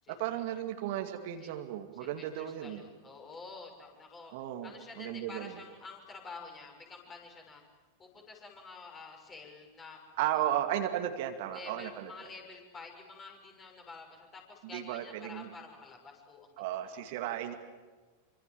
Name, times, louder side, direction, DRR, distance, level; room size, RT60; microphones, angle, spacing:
voice 1, 0.1-2.8 4.3-4.7 5.0-5.5 10.2-12.1 14.7-15.5 16.6-17.5, right 12 dB, 50° right, 6 dB, 2.2 m, -34 dB
voice 2, 2.0-4.3 4.6-7.6 8.0-10.3 11.5-16.6 16.8-17.0, left 4 dB, 20° left, 1 dB, 6.5 m, -49 dB
27.0 x 25.5 x 7.5 m, 1.3 s
figure-of-eight pair, 90°, 0 cm